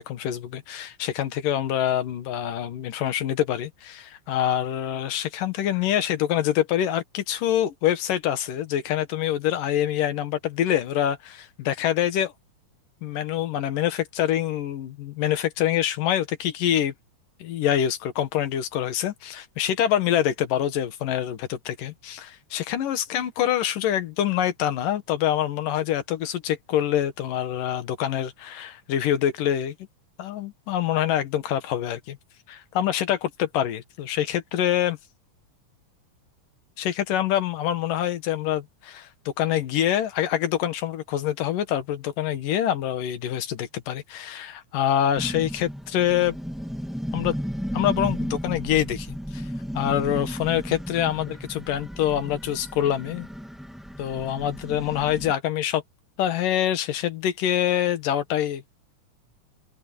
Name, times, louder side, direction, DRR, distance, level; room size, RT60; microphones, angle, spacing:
voice 1, 0.0-12.3 13.0-16.9 17.4-29.7 30.2-32.2 32.5-35.0 36.8-46.4 47.1-47.4 47.7-49.4 49.7-53.3 54.0-55.8 56.2-58.6, left 11 dB, 85° left, 3.1 m, -25 dB
sound 1, 45.2-55.3, equal, ahead, 0.5 m, -34 dB
open air
omnidirectional pair, 3.7 m